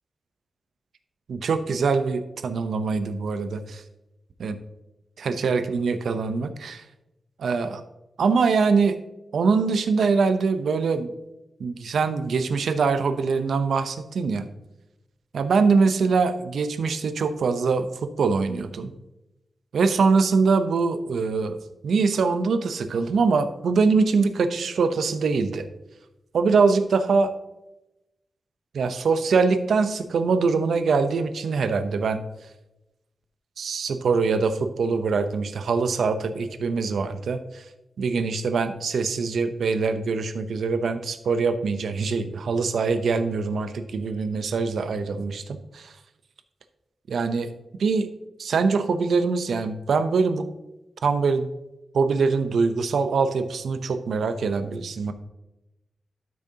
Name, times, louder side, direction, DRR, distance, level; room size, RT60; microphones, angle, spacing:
voice 1, 1.3-3.8 4.4-4.5 5.2-6.8 7.4-7.8 8.2-9.0 9.3-11.1 11.6-14.5 15.3-18.9 19.7-21.6 21.8-25.7 26.3-27.3 28.7-32.2 33.6-37.6 38.0-45.9 47.1-47.5 47.8-48.1 48.4-50.5 51.0-51.5 51.9-55.1, right 4 dB, 85° right, 10 dB, 0.6 m, -23 dB
12.0 x 6.4 x 2.8 m, 0.94 s
wide cardioid pair, 125°, 0 cm